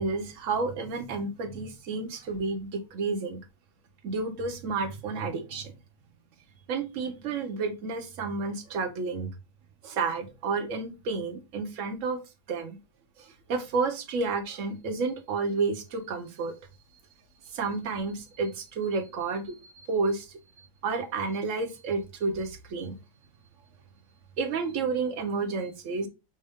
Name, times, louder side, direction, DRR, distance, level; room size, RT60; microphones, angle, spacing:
voice 1, 0.0-3.4 4.0-5.7 6.7-9.3 9.8-12.2 12.5-12.8 13.2-16.5 17.5-23.0 24.4-26.1, right 4 dB, 55° right, 1.0 m, -31 dB
5.4 x 2.6 x 3.4 m
omnidirectional pair, 1.9 m